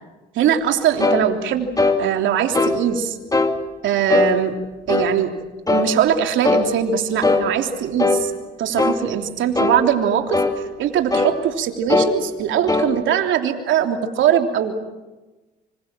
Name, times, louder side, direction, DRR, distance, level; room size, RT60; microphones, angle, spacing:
voice 1, 0.3-1.7 2.0-3.2 3.8-4.5 4.9-5.3 5.7-8.3 8.6-10.4 10.8-14.7, right 8 dB, 65° right, 4 dB, 3.3 m, -21 dB
sound 1, 1.0-1.2 1.8-2.0 2.5-2.8 3.3-3.6 4.1-4.3 4.9-5.1 5.7-5.9 6.4-6.7 7.2-7.5 8.0-8.2 8.8-9.0 9.6-9.8 10.3-10.6 11.1-11.4 11.9-12.1 12.7-12.9, left 3 dB, 15° left, 2.8 m, -18 dB
26.0 x 26.0 x 7.6 m, 1.1 s
supercardioid pair, 75°, 21 cm